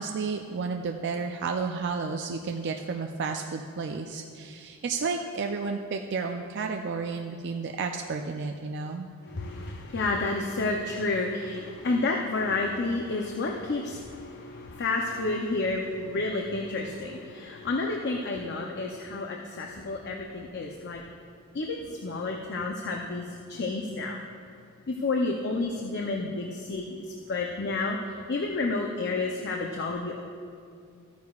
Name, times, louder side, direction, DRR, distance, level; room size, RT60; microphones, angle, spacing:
voice 1, 0.0-9.1, right 4 dB, 55° right, 3 dB, 0.4 m, -32 dB
voice 2, 9.2-21.0 21.5-24.2 24.9-28.0 28.3-30.2, left 3 dB, 50° left, 1 dB, 0.6 m, -30 dB
14.0 x 9.3 x 2.4 m, 2.3 s
head